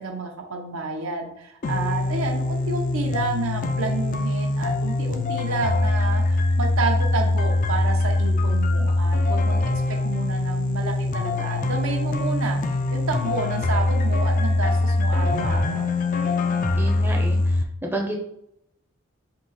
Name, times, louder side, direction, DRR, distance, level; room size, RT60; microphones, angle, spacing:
voice 1, 0.0-9.6 10.0-12.6 12.9-15.9, right 3 dB, 80° right, 2 dB, 0.8 m, -30 dB
sound 1, 1.6-17.6, left 2 dB, 40° left, 0.3 m, -23 dB
voice 2, 16.8-18.2, right 1 dB, 10° right, 0 dB, 0.5 m, -30 dB
3.8 x 2.8 x 4.0 m, 0.77 s
head